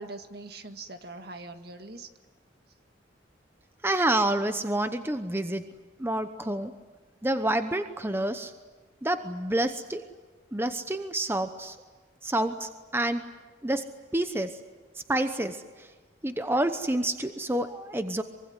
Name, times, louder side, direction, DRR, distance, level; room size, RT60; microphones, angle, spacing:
voice 1, 0.0-2.1, right 2 dB, 60° right, 7 dB, 1.9 m, -42 dB
voice 2, 3.8-5.7 6.0-6.7 7.2-8.5 9.0-10.1 10.5-11.8 12.2-13.3 13.6-14.6 14.9-15.9 16.2-18.2, right 1 dB, 15° right, 8 dB, 0.9 m, -28 dB
24.5 x 23.5 x 9.6 m, 1.3 s
head